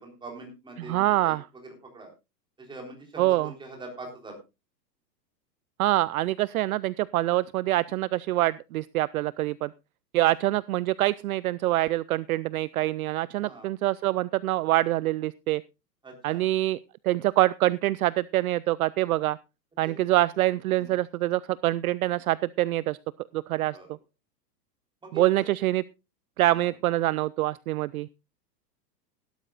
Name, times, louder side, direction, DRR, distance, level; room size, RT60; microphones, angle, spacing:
voice 1, 0.0-1.4 1.6-2.1 2.6-4.4 13.4-13.7 16.0-16.5 19.8-20.1 20.8-21.0 23.7-23.9 25.0-25.2 26.6-26.7, right 2 dB, 10° right, 1 dB, 3.7 m, -43 dB
voice 2, 0.8-1.4 3.2-3.5 5.8-9.7 10.1-15.6 16.2-16.8 17.0-19.4 19.8-23.0 23.3-23.8 25.1-25.8 26.4-28.1, right 16 dB, 60° right, 20 dB, 0.5 m, -25 dB
17.0 x 12.5 x 2.4 m, 0.26 s
hypercardioid pair, 155°, 50 cm